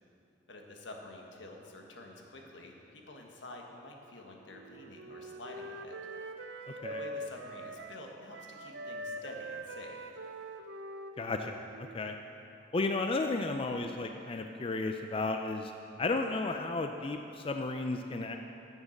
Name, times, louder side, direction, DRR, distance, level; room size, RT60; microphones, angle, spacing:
voice 1, 0.5-6.0 6.9-10.0, left 2 dB, 80° left, 1 dB, 1.4 m, -48 dB
Wind instrument woodwind instrument, 4.5-8.0 8.3-12.2, right 1 dB, 70° right, 0.7 m, -43 dB
voice 2, 11.2-12.1 12.7-15.7 16.0-18.4, left 3 dB, 30° left, 5 dB, 0.4 m, -33 dB
11.0 x 7.2 x 6.5 m, 2.9 s
head